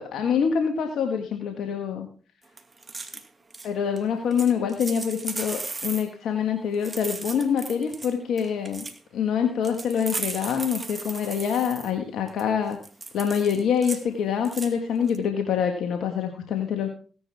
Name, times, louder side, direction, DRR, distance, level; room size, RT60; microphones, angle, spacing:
voice 1, 0.0-2.1 3.6-8.8 9.1-12.8 13.1-16.9, left 7 dB, 75° left, 5 dB, 1.7 m, -25 dB
sound 1, 2.6-3.2 3.5-3.7 4.0-4.1 4.3-6.1 6.7-8.1 8.4-9.0 9.6-11.9 12.3-12.4 12.7-14.0 14.4-14.7 15.1-15.2, right 3 dB, 30° right, 2.3 m, -36 dB
16.5 x 10.5 x 3.5 m, 0.39 s
supercardioid pair, 60°, 0 cm